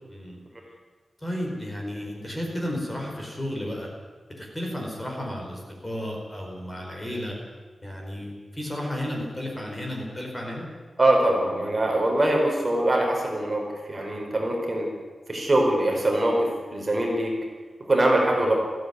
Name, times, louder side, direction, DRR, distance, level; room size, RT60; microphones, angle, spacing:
voice 1, 1.2-3.9 4.4-7.4 7.8-10.7 18.4-18.5, left 1 dB, 15° left, 0 dB, 4.7 m, -33 dB
voice 2, 11.0-13.6 13.9-14.9 15.3-17.3 17.8-18.5, right 1 dB, 25° right, 0 dB, 4.5 m, -23 dB
20.5 x 15.5 x 9.5 m, 1.4 s
wide cardioid pair, 155°, 0 cm